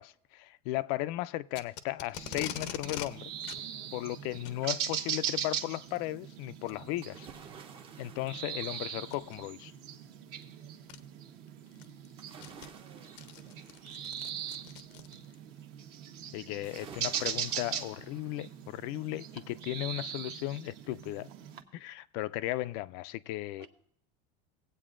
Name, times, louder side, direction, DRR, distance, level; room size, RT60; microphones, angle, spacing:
voice 1, 0.0-3.3 3.9-7.3 8.0-9.7 16.3-21.3 21.7-23.7, left 16 dB, 65° left, 0.4 m, -36 dB
Packing tape duct tape, 1.5-3.1 3.4-3.6 4.3-4.6 5.7-6.0 6.7-6.8 7.4-7.5 9.0-9.3 10.4-10.5 10.9-11.0 11.5-15.4, left 10 dB, 85° left, 0.8 m, -43 dB
sound 1, 2.2-21.6, right 9 dB, 55° right, 0.9 m, -40 dB
voice 2, 3.6-4.0 12.8-13.5 23.6-23.7, right 10 dB, 70° right, 1.2 m, -57 dB
sound 2, 7.0-9.8 12.2-14.8 16.6-18.9 19.3-19.4, right 6 dB, 25° right, 0.6 m, -53 dB
18.5 x 8.2 x 2.5 m
cardioid pair, 150°, 21 cm